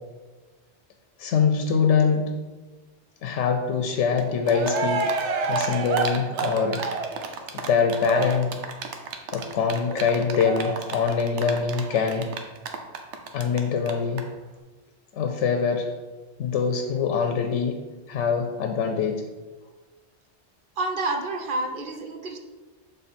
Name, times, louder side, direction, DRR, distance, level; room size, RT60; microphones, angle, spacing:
voice 1, 1.2-2.3 3.2-5.1 5.5-6.8 7.5-8.5 9.3-12.3 13.3-14.2 15.1-15.9 16.4-17.8 18.1-19.2, left 6 dB, 90° left, 5 dB, 0.9 m, -24 dB
Cheering, 4.2-4.3 4.5-13.6 13.9-14.0 14.2-14.3, right 4 dB, 85° right, 1.0 m, -29 dB
voice 2, 20.8-22.4, right 2 dB, 55° right, 5 dB, 0.7 m, -29 dB
6.9 x 3.5 x 4.2 m, 1.3 s
omnidirectional pair, 1.2 m